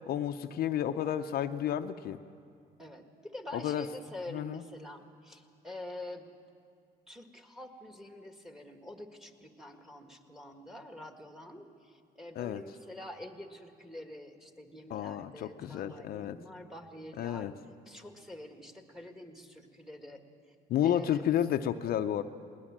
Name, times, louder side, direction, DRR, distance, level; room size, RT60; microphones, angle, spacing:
voice 1, 0.1-2.2 3.5-3.8 4.3-4.6 12.4-12.6 14.9-16.4 17.2-17.5 20.7-22.2, left 10 dB, 65° left, 8 dB, 0.7 m, -31 dB
voice 2, 2.8-6.3 7.1-17.6 17.8-20.2 20.8-21.4, left 1 dB, ahead, 5 dB, 1.8 m, -47 dB
20.5 x 19.5 x 7.5 m, 2.3 s
cardioid pair, 110°, 17 cm